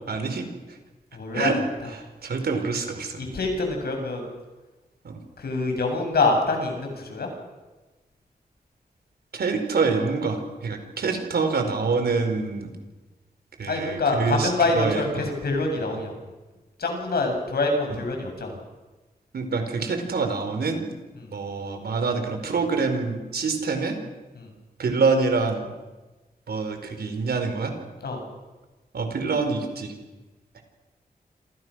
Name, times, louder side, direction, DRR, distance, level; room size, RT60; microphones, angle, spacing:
voice 1, 0.1-0.8 1.3-3.4 5.0-5.2 9.3-12.7 13.6-15.3 17.9-18.0 19.3-20.8 21.3-24.0 24.8-25.7 26.5-27.7 28.9-29.9, right 4 dB, 85° right, 6 dB, 4.8 m, -26 dB
voice 2, 1.1-1.6 3.2-4.3 5.4-7.3 13.7-16.1 16.8-18.6 21.2-21.3 24.4-24.5 28.0-28.2, left 3 dB, 80° left, 3 dB, 7.3 m, -25 dB
28.0 x 27.5 x 6.4 m, 1.2 s
wide cardioid pair, 135°, 16 cm